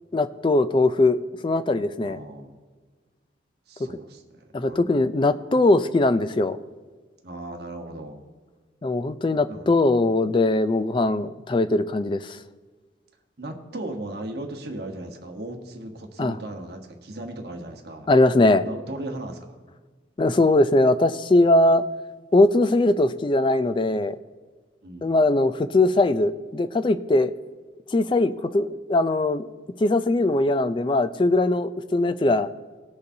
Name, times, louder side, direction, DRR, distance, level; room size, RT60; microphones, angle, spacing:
voice 1, 0.1-1.2 1.4-2.2 4.5-6.6 8.8-12.4 16.2-16.3 18.1-18.7 20.2-21.8 22.3-24.2 25.0-27.3 27.9-29.5 29.8-32.5, left 2 dB, 25° left, 12 dB, 0.3 m, -20 dB
voice 2, 2.0-2.6 3.7-4.2 4.6-5.2 7.2-8.2 9.5-9.7 13.4-18.1 18.6-19.6 24.8-25.2, right 1 dB, 55° right, 2 dB, 1.1 m, -37 dB
19.5 x 6.7 x 2.7 m, 1.4 s
head